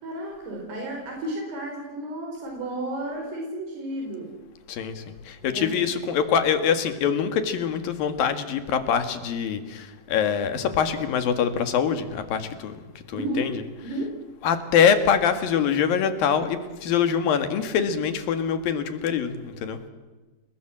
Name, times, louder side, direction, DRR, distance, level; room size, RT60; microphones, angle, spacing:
voice 1, 0.0-4.3 5.4-5.7 13.1-13.4 13.8-14.1, right 1 dB, 80° right, 1 dB, 6.5 m, -32 dB
voice 2, 4.7-13.6 14.4-19.8, left 7 dB, 65° left, 9 dB, 3.4 m, -24 dB
30.0 x 20.5 x 7.6 m, 1.2 s
omnidirectional pair, 4.7 m